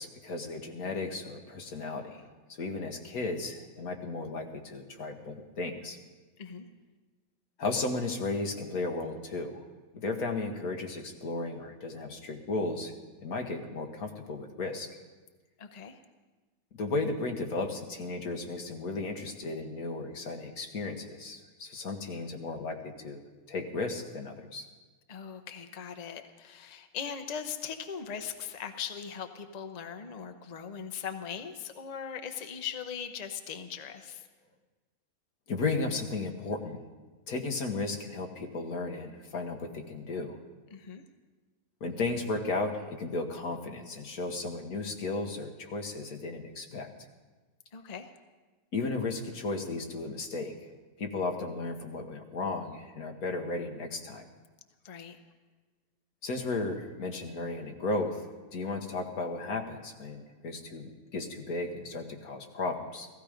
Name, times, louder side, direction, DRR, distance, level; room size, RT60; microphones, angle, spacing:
voice 1, 0.0-2.2 2.6-6.0 7.6-9.6 9.9-12.9 13.2-14.9 16.8-23.2 23.5-24.7 35.5-36.8 37.3-40.4 41.8-46.9 48.7-50.7 51.0-54.3 56.2-58.2 58.5-63.1, left 3 dB, 85° left, 4 dB, 1.8 m, -34 dB
voice 2, 15.6-16.0 25.1-34.2 40.7-41.0 47.7-48.1 54.8-55.2, left 7 dB, 35° left, 7 dB, 0.8 m, -40 dB
16.0 x 15.5 x 5.1 m, 1.3 s
omnidirectional pair, 1.5 m